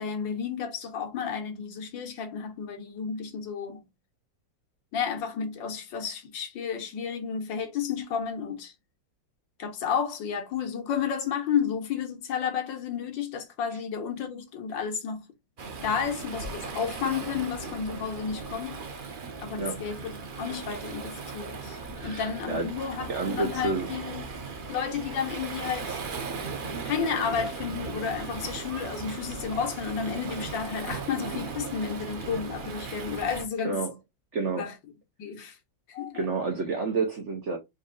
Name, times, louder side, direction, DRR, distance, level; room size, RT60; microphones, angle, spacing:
voice 1, 0.0-3.8 4.9-8.7 9.6-15.3 15.8-18.8 19.4-24.2 24.7-26.0 26.8-33.8 34.6-34.7 35.2-35.6 35.9-36.3, left 7 dB, 80° left, 1.7 m, -32 dB
Waves surf, 15.6-33.5, right 4 dB, 80° right, 0.4 m, -37 dB
voice 2, 22.0-22.7 23.1-23.9 33.6-33.9 34.3-34.7 36.1-37.6, right 3 dB, 50° right, 0.9 m, -29 dB
4.1 x 2.5 x 3.8 m
omnidirectional pair, 2.0 m